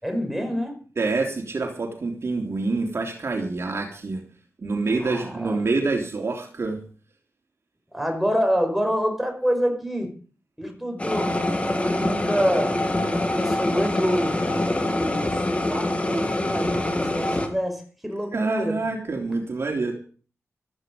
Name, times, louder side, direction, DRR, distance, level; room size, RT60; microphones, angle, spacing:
voice 1, 0.0-0.8 5.0-5.6 7.9-10.1 10.6-11.4 11.8-12.7 13.0-14.4 14.8-18.8, equal, ahead, 3 dB, 5.4 m, -27 dB
voice 2, 1.0-4.2 4.6-6.8 18.3-19.9, right 3 dB, 50° right, 2 dB, 3.4 m, -26 dB
sound 1, 11.0-17.5, left 1 dB, 25° left, 2.7 m, -25 dB
15.0 x 13.5 x 5.4 m, 0.40 s
wide cardioid pair, 95°, 5 cm